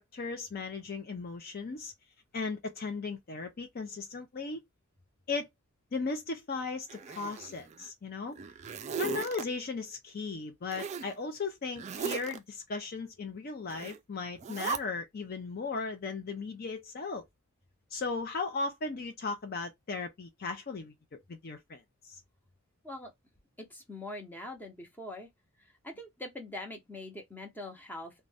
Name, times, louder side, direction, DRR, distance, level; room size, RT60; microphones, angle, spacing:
voice 1, 0.0-1.9 2.3-4.6 5.3-5.5 5.9-8.3 9.0-17.2 17.9-22.2, left 4 dB, 45° left, 0.5 m, -37 dB
Zipper (clothing), 6.9-7.9 8.3-9.4 10.7-11.1 11.8-12.4 13.7-14.0 14.4-14.8, right 6 dB, 30° right, 0.3 m, -37 dB
voice 2, 23.7-25.3 25.8-28.1, left 1 dB, 10° left, 0.8 m, -43 dB
2.5 x 2.2 x 3.2 m
head